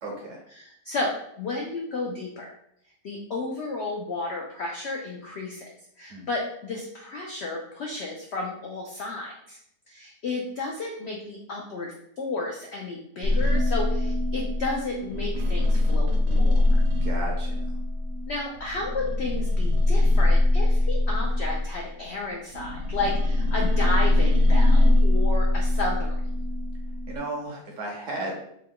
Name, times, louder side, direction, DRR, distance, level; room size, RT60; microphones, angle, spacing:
voice 1, 0.0-0.4 6.1-6.3 17.0-17.8 27.1-28.4, right 2 dB, 65° right, 0 dB, 0.9 m, -34 dB
voice 2, 0.6-2.5 3.0-5.7 6.0-9.6 9.9-16.8 18.3-26.2, left 2 dB, 80° left, 0 dB, 0.5 m, -32 dB
sound 1, 13.2-22.0 22.5-27.2, left 2 dB, 90° right, 1.3 m, -22 dB
3.5 x 2.2 x 3.5 m, 0.72 s
omnidirectional pair, 1.8 m